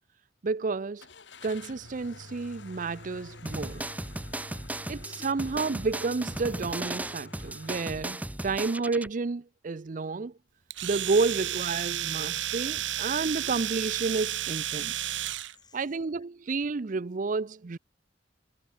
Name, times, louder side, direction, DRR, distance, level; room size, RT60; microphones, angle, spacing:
voice 1, 0.4-1.1 1.4-3.8 4.9-10.3 10.8-15.1 15.7-17.8, right 4 dB, 45° right, 0.5 m, -30 dB
Car / Engine starting, 1.0-7.8, left 2 dB, 70° left, 2.6 m, -48 dB
sound 1, 3.5-9.1, right 1 dB, 10° right, 0.7 m, -36 dB
voice 2, 4.5-5.7 12.8-12.9 15.1-15.8, left 1 dB, 20° left, 6.5 m, -57 dB
Domestic sounds home sounds, 10.7-15.5, right 12 dB, 75° right, 1.4 m, -32 dB
head